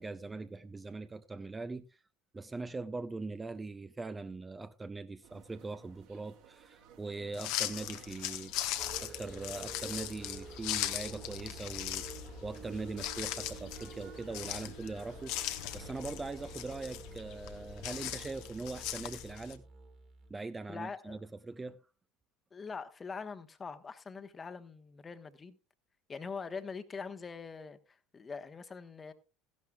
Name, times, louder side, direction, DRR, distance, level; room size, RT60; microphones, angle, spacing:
voice 1, 0.0-2.0 2.3-8.5 9.0-12.1 12.4-19.6 20.3-21.2 21.4-21.8, right 3 dB, 15° right, 0.6 m, -41 dB
sound 1, 5.2-18.3, right 7 dB, 55° right, 2.6 m, -59 dB
sound 2, 7.3-19.6, left 13 dB, 55° left, 1.0 m, -39 dB
Musical instrument, 8.8-20.4, right 4 dB, 40° right, 2.5 m, -50 dB
voice 2, 20.7-21.2 22.5-25.6 26.1-29.1, left 5 dB, 25° left, 1.2 m, -43 dB
15.5 x 12.0 x 2.3 m
figure-of-eight pair, 65°, 0 cm